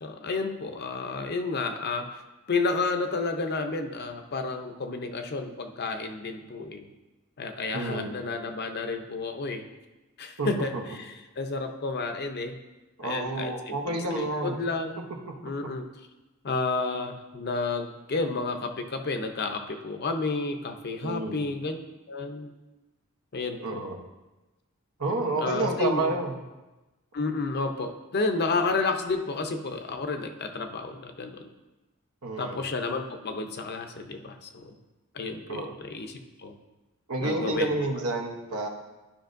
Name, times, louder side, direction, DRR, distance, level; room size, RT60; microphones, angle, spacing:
voice 1, 0.0-2.2 2.5-6.9 7.4-9.7 10.2-12.6 13.0-15.0 15.4-15.8 16.4-21.8 22.1-22.5 23.3-23.8 25.4-26.1 27.1-31.5 32.4-34.8 35.1-36.5 37.2-37.7, left 3 dB, 50° left, 5 dB, 0.6 m, -31 dB
voice 2, 7.7-8.1 10.4-10.8 13.0-14.6 21.0-21.4 23.6-24.0 25.0-26.4 32.2-32.6 35.5-35.7 37.1-38.7, right 2 dB, 85° right, 2 dB, 1.0 m, -29 dB
11.5 x 5.2 x 2.6 m, 1.1 s
head